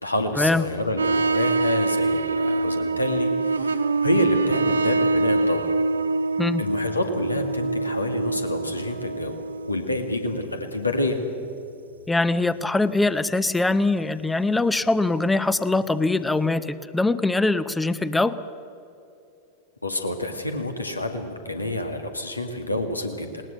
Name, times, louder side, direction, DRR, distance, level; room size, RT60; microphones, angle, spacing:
voice 1, 0.0-5.6 6.6-9.3 9.7-11.2 19.8-23.4, left 1 dB, 85° left, 5 dB, 2.0 m, -28 dB
sound 1, 1.0-11.2 11.6-11.7 14.9-15.0 15.3-15.4 15.8-15.9, right 3 dB, 75° right, 0.6 m, -25 dB
voice 2, 12.1-18.4, left 2 dB, 5° left, 15 dB, 0.7 m, -22 dB
20.0 x 19.5 x 7.9 m, 2.6 s
figure-of-eight pair, 90°, 0 cm